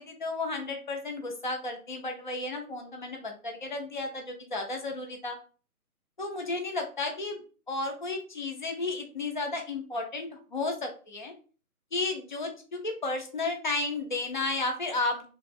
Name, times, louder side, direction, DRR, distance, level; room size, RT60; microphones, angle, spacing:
voice 1, 0.0-5.4 6.2-7.4 7.7-11.3 11.9-15.3, left 3 dB, 35° left, 3 dB, 0.5 m, -33 dB
3.1 x 2.8 x 4.3 m, 0.38 s
hypercardioid pair, 175°, 44 cm